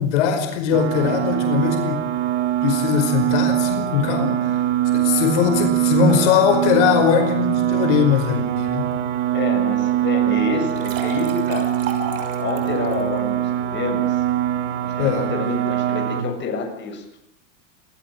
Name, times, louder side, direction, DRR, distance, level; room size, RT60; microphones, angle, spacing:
voice 1, 0.0-2.0 2.6-4.6 4.9-8.9 15.0-15.3, left 7 dB, 70° left, 5 dB, 5.2 m, -20 dB
sound 1, 0.7-16.2, right 12 dB, 75° right, 3.2 m, -23 dB
voice 2, 9.3-11.7 12.4-14.2 14.8-17.0, left 4 dB, 30° left, 3 dB, 7.4 m, -28 dB
sound 2, 10.5-13.0, right 5 dB, 40° right, 6.3 m, -33 dB
28.0 x 18.0 x 7.6 m, 0.71 s
supercardioid pair, 135°, 36 cm